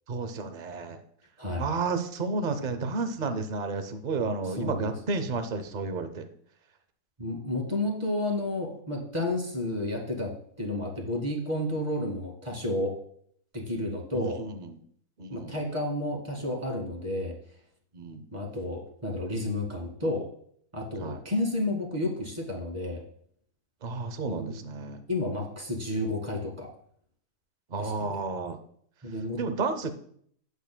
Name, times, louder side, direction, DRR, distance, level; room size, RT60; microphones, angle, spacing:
voice 1, 0.1-1.0 1.6-6.3 14.1-14.7 15.2-15.5 17.9-18.3 21.0-21.2 23.8-25.0 27.7-28.6 29.4-29.9, right 4 dB, 50° right, 8 dB, 0.5 m, -31 dB
voice 2, 4.4-5.0 7.2-13.0 13.5-14.4 15.3-17.4 18.3-20.3 20.7-23.0 24.2-24.5 25.1-26.7 27.8-28.2 29.0-29.4, left 1 dB, 20° right, -1 dB, 1.9 m, -31 dB
11.0 x 8.1 x 2.2 m, 0.62 s
omnidirectional pair, 1.8 m